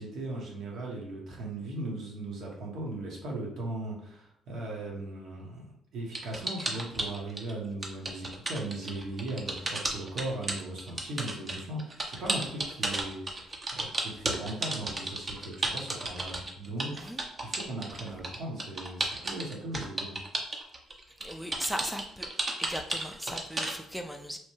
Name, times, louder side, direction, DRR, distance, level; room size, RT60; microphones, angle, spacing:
voice 1, 0.0-17.1 17.4-20.2, right 2 dB, 70° right, -2 dB, 0.9 m, -38 dB
sound 1, 6.1-7.5 7.8-23.7, right 2 dB, 35° right, 0.6 m, -33 dB
voice 2, 21.2-22.3 22.6-24.4, equal, ahead, 4 dB, 0.3 m, -37 dB
2.9 x 2.1 x 3.0 m, 0.71 s
supercardioid pair, 65°, 0 cm